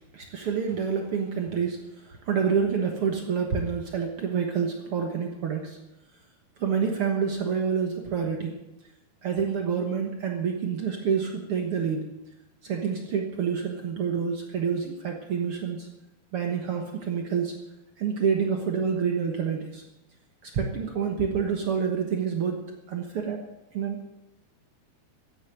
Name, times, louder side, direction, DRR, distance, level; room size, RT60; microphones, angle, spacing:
voice 1, 0.1-1.8 2.3-5.8 6.6-8.6 9.2-12.0 12.6-15.9 16.3-17.5 18.0-19.8 20.4-23.4 23.7-24.1, right 6 dB, 80° right, 2 dB, 1.2 m, -28 dB
14.0 x 9.2 x 9.0 m, 0.95 s
omnidirectional pair, 4.7 m